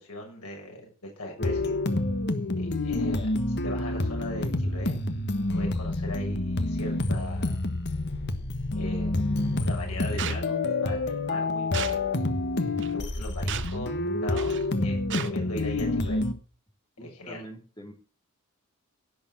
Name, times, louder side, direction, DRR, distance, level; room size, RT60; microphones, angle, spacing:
voice 1, 0.0-1.8 2.6-5.0 5.5-7.6 8.7-9.2 9.6-12.0 12.6-16.2 17.0-17.4, left 1 dB, 90° left, 0 dB, 7.3 m, -39 dB
sound 1, 1.4-16.3, left 2 dB, 50° left, 1.5 m, -28 dB
sound 2, 10.2-10.4 11.7-12.0 12.8-12.9 13.5-13.8 14.4-14.6 15.1-15.3, right 9 dB, 55° right, 1.1 m, -34 dB
voice 2, 17.0-17.9, right 1 dB, 20° left, 3 dB, 3.7 m, -44 dB
17.0 x 7.0 x 7.7 m, 0.40 s
head